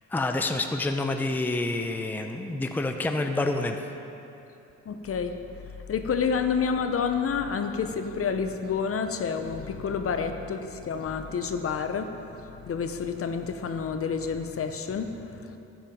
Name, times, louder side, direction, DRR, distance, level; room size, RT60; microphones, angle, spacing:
voice 1, 0.1-3.8, left 2 dB, 5° left, 5 dB, 0.6 m, -28 dB
voice 2, 4.8-5.4 5.6-15.6, left 6 dB, 50° left, 7 dB, 0.8 m, -29 dB
12.0 x 9.0 x 5.3 m, 3.0 s
cardioid pair, 90°, 30 cm